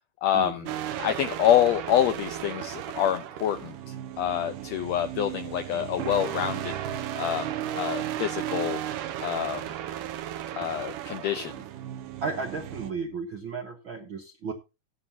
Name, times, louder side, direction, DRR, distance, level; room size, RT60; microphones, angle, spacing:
voice 1, 0.2-0.7 1.0-3.7 4.2-6.8 7.2-8.8 9.2-9.7 10.6-11.5, left 10 dB, 80° left, 9 dB, 1.5 m, -26 dB
sound 1, 0.7-12.9, right 11 dB, 85° right, 2.3 m, -35 dB
voice 2, 12.2-14.5, right 4 dB, 65° right, 3 dB, 1.2 m, -34 dB
14.0 x 9.5 x 2.8 m, 0.27 s
omnidirectional pair, 3.7 m